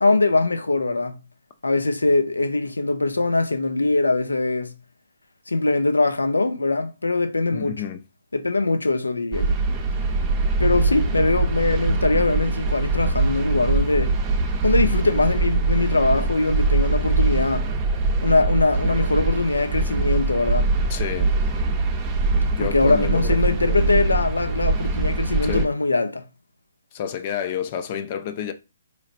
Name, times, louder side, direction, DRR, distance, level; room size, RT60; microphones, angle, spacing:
voice 1, 0.0-1.2 1.6-4.7 5.5-7.8 8.3-9.6 10.6-14.2 14.6-17.7 18.2-20.7 22.6-26.2, left 3 dB, 90° left, 0.6 m, -22 dB
voice 2, 7.5-8.0 20.9-21.3 22.5-24.0 25.4-25.7 26.9-28.5, left 9 dB, 40° left, 0.4 m, -30 dB
sound 1, 9.3-25.7, right 3 dB, 25° right, 0.6 m, -23 dB
4.0 x 3.2 x 2.5 m
figure-of-eight pair, 135°, 0 cm